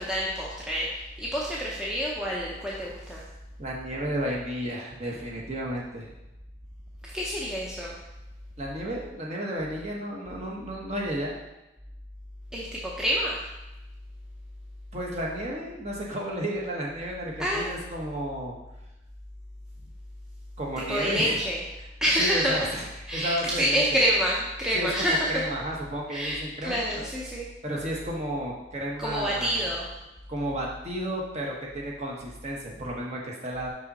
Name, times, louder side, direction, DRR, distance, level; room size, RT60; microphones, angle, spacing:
voice 1, 0.0-3.3 7.0-8.0 12.5-13.4 17.4-17.7 20.9-21.6 22.0-22.7 23.1-25.4 26.1-27.5 29.0-29.9, equal, 5° right, -5 dB, 0.7 m, -27 dB
voice 2, 3.6-6.1 8.6-11.4 14.9-18.5 20.6-21.4 22.2-22.9 23.1-24.0 24.7-27.1 27.6-29.6 30.3-33.7, right 1 dB, 35° right, -3 dB, 1.2 m, -32 dB
5.6 x 5.3 x 4.2 m, 0.97 s
head